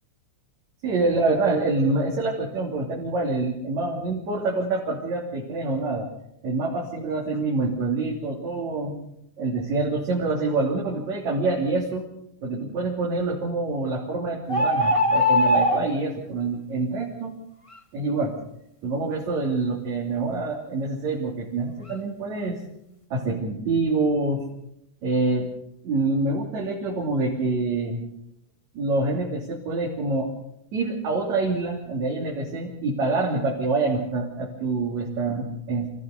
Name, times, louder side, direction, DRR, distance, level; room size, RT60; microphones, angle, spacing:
voice 1, 0.8-6.1 6.4-9.0 9.4-12.1 12.4-17.3 17.9-18.4 18.8-22.6 23.1-24.4 25.0-25.5 25.8-28.0 28.7-30.3 30.7-35.9, right 3 dB, 65° right, -3 dB, 4.3 m, -26 dB
sound 1, 14.5-15.8, left 1 dB, 35° left, 0.5 m, -20 dB
27.0 x 15.5 x 6.7 m, 0.79 s
omnidirectional pair, 3.5 m